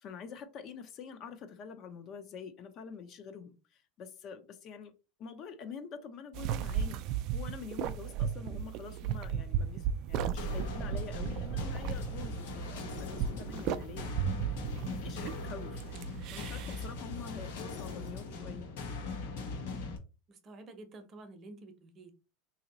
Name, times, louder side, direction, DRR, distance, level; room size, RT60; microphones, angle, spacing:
voice 1, 0.0-4.9 5.2-7.1 7.3-14.1 14.9-16.0 16.3-18.7, left 6 dB, 40° left, 0.6 m, -46 dB
sound 1, 6.3-16.9, right 8 dB, 50° right, 0.4 m, -35 dB
sound 2, 10.4-20.0, left 4 dB, 80° left, 1.1 m, -40 dB
voice 2, 20.3-22.1, right 2 dB, 30° right, 0.8 m, -50 dB
2.9 x 2.8 x 4.0 m
supercardioid pair, 135°, 0 cm